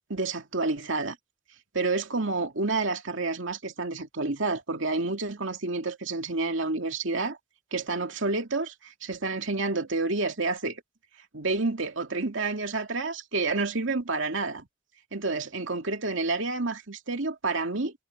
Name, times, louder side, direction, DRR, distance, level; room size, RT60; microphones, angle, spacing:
voice 1, 0.1-1.2 1.7-7.4 7.7-10.8 11.3-14.7 15.1-17.9, right 3 dB, 75° right, 2.4 m, -29 dB
head